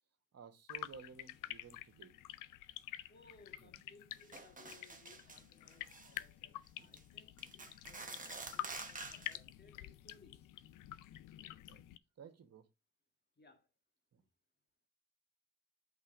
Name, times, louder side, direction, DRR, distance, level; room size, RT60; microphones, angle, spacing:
voice 1, 0.3-2.2 3.6-3.7 11.7-11.8 12.2-12.7 14.1-14.2, right 6 dB, 55° right, 1.2 m, -55 dB
sound 1, 0.7-12.0, left 14 dB, 80° left, 0.5 m, -49 dB
voice 2, 3.1-10.5 13.4-13.7, left 3 dB, 35° left, 1.6 m, -64 dB
sound 2, 4.3-5.4 5.7-6.2 6.8-7.0 7.4-9.4, right 3 dB, 25° right, 1.2 m, -48 dB
5.6 x 3.3 x 5.2 m
supercardioid pair, 55°, 31 cm